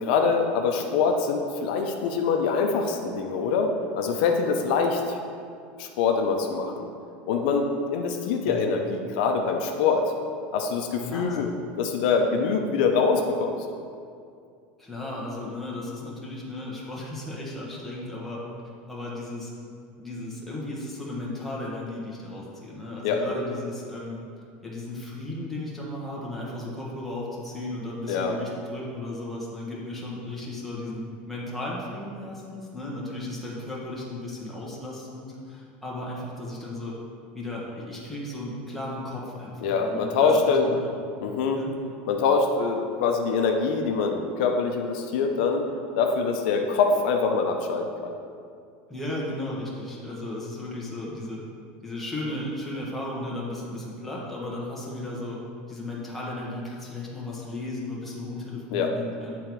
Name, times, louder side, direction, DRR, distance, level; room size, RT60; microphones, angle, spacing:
voice 1, 0.0-5.2 5.8-6.9 7.3-10.1 10.5-11.5 11.8-13.6 23.0-23.2 28.1-28.3 39.6-40.7 41.2-41.6 42.1-45.7 46.0-48.1 58.7-58.9, left 5 dB, 70° left, 3 dB, 0.6 m, -24 dB
voice 2, 11.0-11.4 12.2-12.4 14.8-18.4 18.9-19.5 20.0-24.2 24.6-36.9 37.3-41.0 41.5-41.7 48.9-51.4 51.8-55.4 55.7-59.4, left 1 dB, 5° left, -6 dB, 1.2 m, -35 dB
8.7 x 3.8 x 4.6 m, 2.4 s
supercardioid pair, 160°, 5 cm